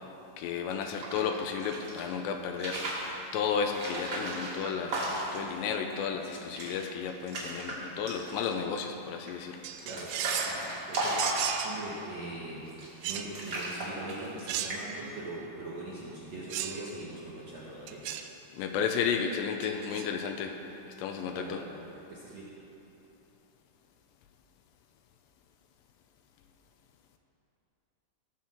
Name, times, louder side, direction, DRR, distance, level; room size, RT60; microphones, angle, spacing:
voice 1, 0.4-3.1 3.3-9.6 18.5-20.6 21.0-21.6, left 6 dB, 85° left, 5 dB, 2.8 m, -33 dB
sound 1, 0.7-2.0 2.5-3.1 3.7-5.5 5.9-6.0 6.2-6.7 7.1-7.7 8.1-8.6 9.3-12.0 12.7-13.1 13.3-14.4 14.7-15.1, right 1 dB, 40° right, 2.3 m, -35 dB
sound 2, 9.6-10.6 11.2-11.8 13.0-13.3 14.5-15.0 16.5-16.8 17.9-18.3 19.6-20.1, right 10 dB, 90° right, 2.3 m, -35 dB
voice 2, 9.8-12.7 13.0-18.0 21.3-21.7 22.1-22.5, right 2 dB, 60° right, -8 dB, 1.8 m, -41 dB
18.5 x 7.2 x 4.4 m, 3.0 s
omnidirectional pair, 5.2 m